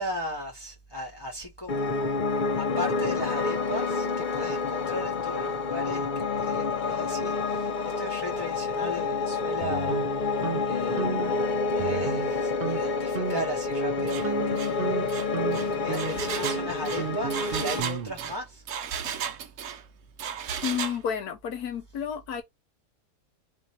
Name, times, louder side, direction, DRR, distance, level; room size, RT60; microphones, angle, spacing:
voice 1, 0.0-10.0 10.6-11.1 11.5-14.6 15.4-19.3, equal, 20° left, 0.9 m, -37 dB
Piano, 1.7-17.8, left 4 dB, 55° left, 0.5 m, -28 dB
sound 1, 9.6-10.6 11.0-11.4 11.8-12.3 12.6-12.8 13.1-13.6 14.0-18.3, right 7 dB, 85° right, 0.4 m, -34 dB
Engine, 14.1-14.3 14.6-14.8 15.1-19.8 20.2-21.0, right 8 dB, 65° right, 0.9 m, -34 dB
voice 2, 20.6-22.4, left 8 dB, 85° left, 1.4 m, -31 dB
3.0 x 2.7 x 4.3 m
omnidirectional pair, 1.6 m